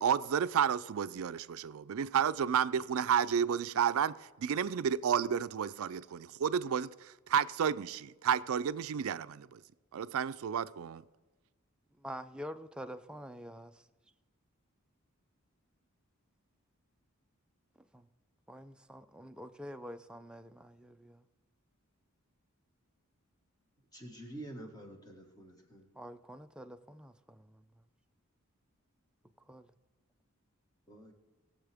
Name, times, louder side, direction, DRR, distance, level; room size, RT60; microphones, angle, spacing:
voice 1, 0.0-9.6 9.9-11.0, right 8 dB, 75° right, 0.4 m, -31 dB
voice 2, 12.0-13.9 17.9-18.1 18.5-21.3 26.0-27.6 29.5-29.7, equal, 5° right, 0.4 m, -47 dB
voice 3, 23.9-25.9 30.9-31.1, right 1 dB, 20° left, 1.6 m, -48 dB
20.0 x 7.3 x 3.5 m
head